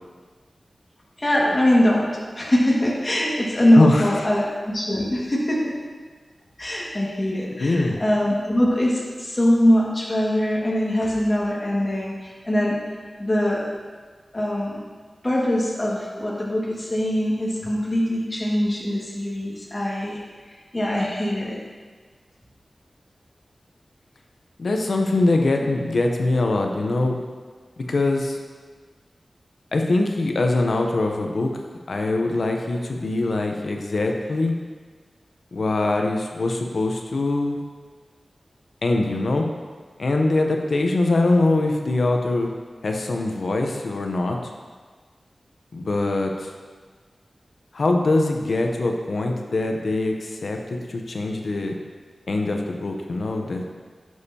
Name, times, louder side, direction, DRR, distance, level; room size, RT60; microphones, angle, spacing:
voice 1, 1.2-5.8 6.6-12.8 13.2-13.6 14.3-14.8 15.2-20.2 20.5-21.6, left 1 dB, 30° left, -4 dB, 1.9 m, -22 dB
voice 2, 7.6-8.0 24.6-27.2 27.8-28.4 29.7-31.5 31.9-34.5 35.5-37.6 38.8-39.5 40.0-42.5 42.8-44.5 45.7-46.5 47.7-51.8 52.3-53.6, left 2 dB, 75° left, 2 dB, 0.8 m, -23 dB
10.5 x 6.4 x 2.9 m, 1.5 s
wide cardioid pair, 70°, 0 cm